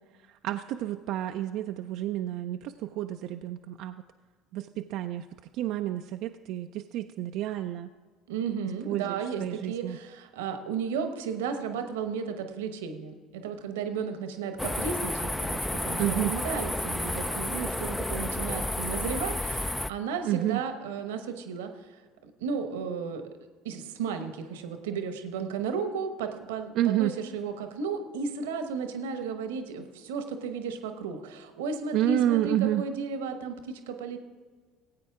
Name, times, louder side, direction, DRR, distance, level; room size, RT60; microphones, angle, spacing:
voice 1, 0.3-4.0 4.5-5.3 5.5-7.9 8.8-10.0 16.0-16.3 20.3-20.6 26.7-27.1 31.9-32.8, right 13 dB, 60° right, 6 dB, 0.4 m, -29 dB
voice 2, 8.3-23.2 23.6-34.2, right 5 dB, 80° right, 7 dB, 1.0 m, -34 dB
sound 1, 14.6-19.9, left 1 dB, 10° left, 0.4 m, -31 dB
17.5 x 8.5 x 3.6 m, 1.5 s
hypercardioid pair, 65°, 0 cm